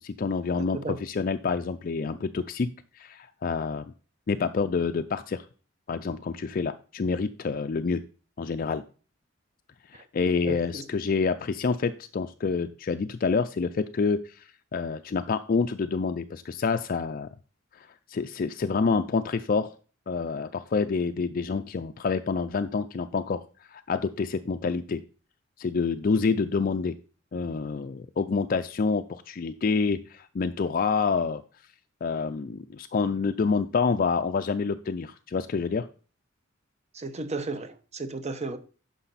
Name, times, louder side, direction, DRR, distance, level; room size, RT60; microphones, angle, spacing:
voice 1, 0.0-3.9 4.3-5.4 5.9-8.0 8.4-8.8 9.9-17.3 17.7-19.7 20.1-23.4 23.7-25.0 25.6-27.0 27.3-31.4 32.0-35.9, left 4 dB, 45° left, 0.4 m, -27 dB
voice 2, 0.5-1.0 9.9-10.0 10.4-10.9 36.9-38.6, right 2 dB, 35° right, 0.9 m, -34 dB
9.9 x 6.1 x 4.1 m
head